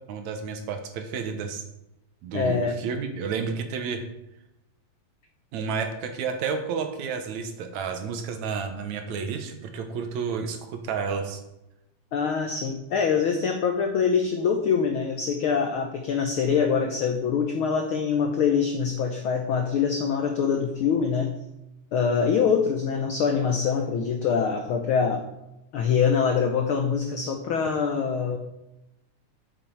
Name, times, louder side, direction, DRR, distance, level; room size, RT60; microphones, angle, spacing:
voice 1, 0.1-1.6 2.2-4.0 5.5-11.4, right 5 dB, 75° right, 6 dB, 2.3 m, -31 dB
voice 2, 2.3-2.8 12.1-21.3 21.9-25.2 25.7-28.4, left 6 dB, 85° left, 4 dB, 1.1 m, -24 dB
8.8 x 7.4 x 4.6 m, 0.91 s
omnidirectional pair, 3.4 m